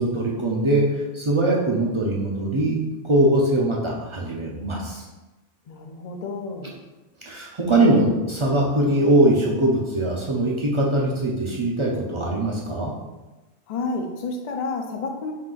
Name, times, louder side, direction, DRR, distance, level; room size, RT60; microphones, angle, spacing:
voice 1, 0.0-2.8 3.0-5.0 7.2-12.9, right 1 dB, 55° right, -3 dB, 0.3 m, -21 dB
voice 2, 5.7-6.7 13.7-15.3, left 3 dB, 65° left, 3 dB, 0.4 m, -30 dB
4.4 x 2.4 x 3.7 m, 1.1 s
omnidirectional pair, 1.3 m